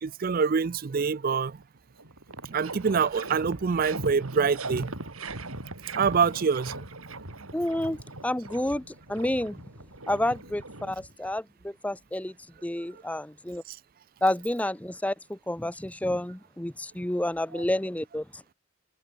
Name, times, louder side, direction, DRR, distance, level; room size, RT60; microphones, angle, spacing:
voice 1, 0.0-1.6 2.5-4.9 6.0-6.7, right 5 dB, 40° right, 0.4 m, -25 dB
sound 1, 1.6-1.7 2.0-11.4, right 2 dB, 85° right, 7.6 m, -40 dB
voice 2, 7.5-9.6 10.1-12.3 12.6-13.6 14.2-18.4, left 1 dB, 5° left, 0.6 m, -30 dB
head